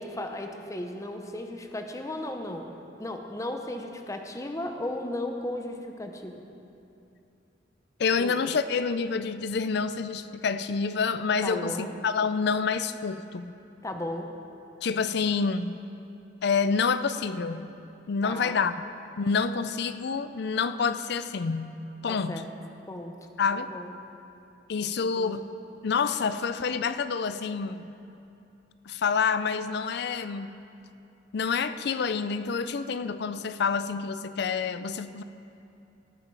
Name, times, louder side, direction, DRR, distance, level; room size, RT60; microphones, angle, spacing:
voice 1, 0.0-2.7 3.0-6.5 8.2-8.4 11.4-12.0 13.8-14.3 18.2-18.6 22.1-22.5 22.9-23.1 23.6-23.9 25.0-25.5, left 1 dB, 15° left, 4 dB, 0.8 m, -35 dB
voice 2, 8.0-13.5 14.8-15.8 16.4-17.7 18.1-18.7 19.2-22.5 23.4-23.7 24.7-25.4 25.8-27.9 28.9-30.6 31.3-35.2, left 5 dB, 60° left, 12 dB, 0.4 m, -28 dB
17.0 x 8.9 x 4.7 m, 2.7 s
head